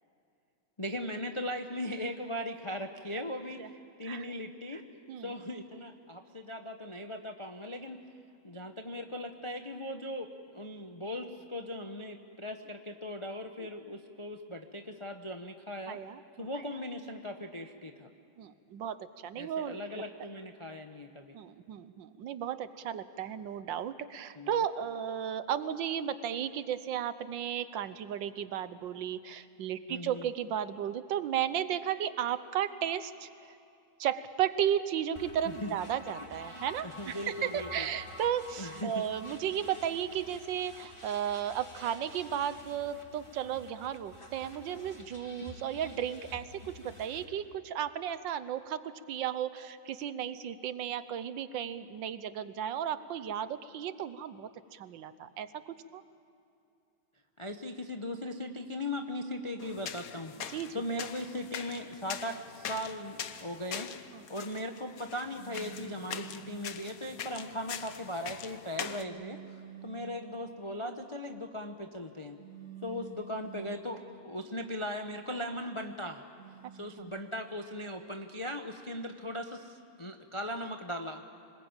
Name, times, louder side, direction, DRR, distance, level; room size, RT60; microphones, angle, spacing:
voice 1, 0.8-4.8 5.2-8.0 8.4-16.0 16.4-18.1 19.3-21.4 24.3-24.6 29.9-30.3 35.4-35.8 36.8-37.9 38.6-39.0 57.4-63.9 64.3-72.4 72.8-76.2 76.7-81.2, left 1 dB, 40° left, 5 dB, 0.4 m, -39 dB
voice 2, 15.9-16.5 18.4-20.0 21.3-33.5 34.0-56.0 60.5-60.8 64.1-64.2 77.0-77.1, right 9 dB, 70° right, 13 dB, 1.4 m, -34 dB
sound 1, 35.1-47.2, left 1 dB, 15° left, 1.8 m, -49 dB
sound 2, 59.6-69.0, left 8 dB, 55° left, 1.1 m, -43 dB
sound 3, 65.3-66.7 68.8-70.2 72.4-73.9 76.3-77.0, right 10 dB, 35° right, 4.7 m, -48 dB
25.5 x 20.5 x 8.9 m, 2.6 s
omnidirectional pair, 2.2 m